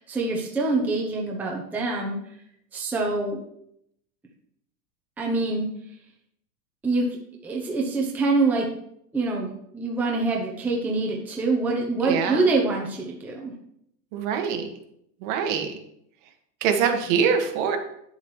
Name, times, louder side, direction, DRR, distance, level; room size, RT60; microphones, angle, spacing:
voice 1, 0.0-2.2 2.7-3.4 5.2-5.7 6.8-7.1 7.4-8.6 9.1-13.5, right 3 dB, 5° right, -1 dB, 0.7 m, -25 dB
voice 2, 12.0-12.5 14.1-14.7 15.2-15.7 16.6-17.8, right 6 dB, 45° right, 5 dB, 1.5 m, -24 dB
10.0 x 7.3 x 3.1 m, 0.73 s
supercardioid pair, 150°, 48 cm